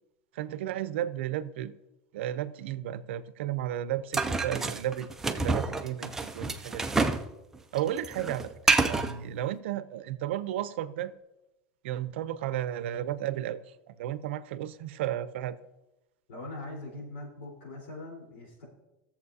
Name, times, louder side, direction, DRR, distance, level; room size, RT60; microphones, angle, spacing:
voice 1, 0.3-1.7 2.1-6.9 7.7-8.5 8.9-11.1 11.8-13.6 13.9-15.6, right 12 dB, 85° right, 0.5 m, -33 dB
sound 1, 4.1-7.3 7.5-9.1, right 3 dB, 5° right, 0.4 m, -28 dB
voice 2, 16.3-18.6, left 2 dB, 90° left, 3.9 m, -41 dB
16.5 x 7.2 x 2.7 m
supercardioid pair, 165°, 6 cm